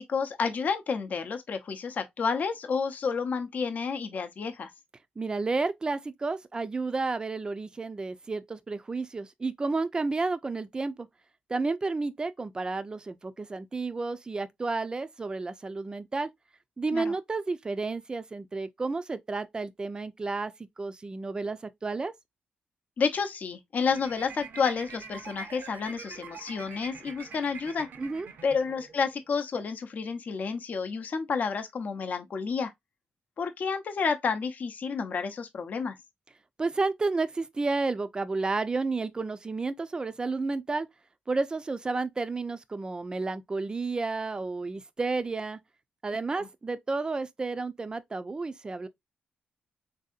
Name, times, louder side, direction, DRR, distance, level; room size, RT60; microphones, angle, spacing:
voice 1, 0.0-4.7 16.9-17.0 23.0-27.9 28.4-32.7 33.4-35.9 46.4-46.5, left 5 dB, 55° left, 0.5 m, -30 dB
voice 2, 5.2-11.1 11.5-16.3 16.8-22.1 28.0-28.3 36.6-40.9 41.3-45.6 46.0-48.9, right 3 dB, 25° right, 0.4 m, -31 dB
sound 1, 23.9-29.1, right 5 dB, 75° right, 0.6 m, -45 dB
3.5 x 2.7 x 2.4 m
cardioid pair, 95°, 3 cm